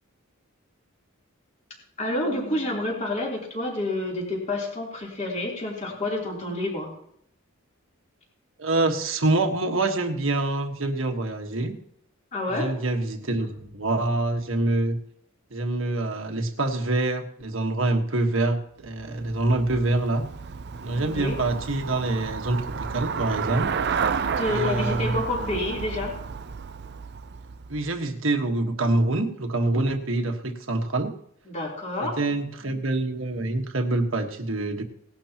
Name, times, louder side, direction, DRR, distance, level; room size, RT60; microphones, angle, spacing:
voice 1, 2.0-6.9 12.3-12.7 13.4-13.5 20.8-21.4 24.3-26.1 31.5-32.4 32.7-32.8, left 1 dB, 35° left, -3 dB, 3.5 m, -29 dB
voice 2, 8.6-11.8 12.5-15.0 15.5-20.2 20.8-23.7 24.5-25.2 27.7-31.1 32.0-34.8, right 2 dB, 65° right, 4 dB, 1.5 m, -26 dB
Traffic noise roadway noise / Bicycle, 18.9-28.0, right 6 dB, 50° right, 0.5 m, -31 dB
18.5 x 11.5 x 3.0 m, 0.71 s
head